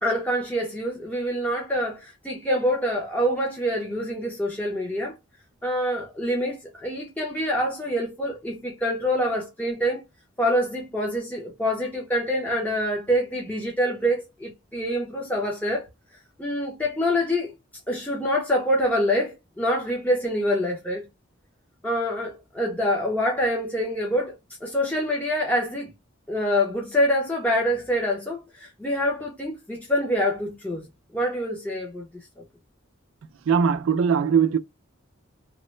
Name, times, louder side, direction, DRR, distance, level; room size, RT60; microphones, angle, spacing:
voice 1, 0.0-5.1 5.6-10.0 10.4-15.9 16.4-17.5 17.9-21.0 21.8-24.3 24.6-25.9 26.3-30.8 31.1-32.1 32.4-32.5, equal, 10° left, 0.6 m, -26 dB
voice 2, 33.5-34.6, right 6 dB, 85° right, 0.3 m, -20 dB
3.1 x 2.1 x 3.0 m
head